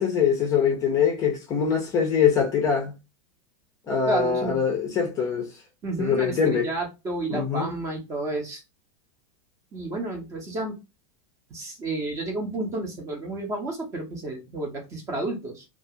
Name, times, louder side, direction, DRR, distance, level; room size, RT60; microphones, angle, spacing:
voice 1, 0.0-2.9 3.9-5.5 6.0-6.7 7.3-7.7, left 6 dB, 20° left, 0.5 m, -23 dB
voice 2, 4.1-4.6 5.8-8.6 9.7-10.8 11.5-15.6, right 2 dB, 20° right, 0.7 m, -31 dB
2.4 x 2.4 x 2.6 m
supercardioid pair, 160°, 16 cm